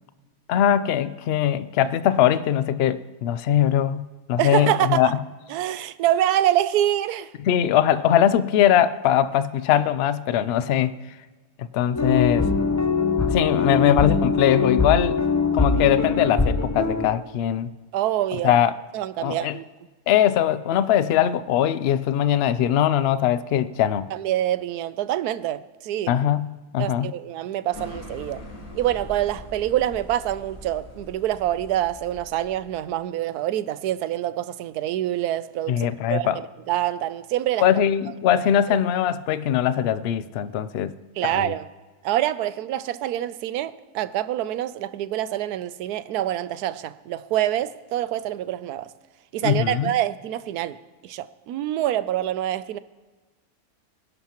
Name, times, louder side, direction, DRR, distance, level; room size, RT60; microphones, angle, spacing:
voice 1, 0.5-5.2 7.4-10.9 11.6-12.5 13.3-15.2 15.5-17.7 18.3-18.7 19.2-19.6 20.1-24.1 26.1-27.1 35.7-36.4 37.6-40.9 41.2-41.5 49.4-49.9, left 10 dB, 80° left, 0.5 m, -21 dB
voice 2, 4.4-5.0 5.5-7.3 17.9-18.5 18.9-19.6 24.1-26.2 26.8-28.4 28.7-37.7 41.2-41.7 42.0-48.9 49.3-50.8 51.0-52.8, right 12 dB, 80° right, 1.1 m, -26 dB
sound 1, 11.9-17.1, left 4 dB, 20° left, 0.4 m, -22 dB
sound 2, 27.7-32.9, left 1 dB, 60° left, 2.2 m, -42 dB
25.5 x 11.5 x 3.0 m
omnidirectional pair, 1.6 m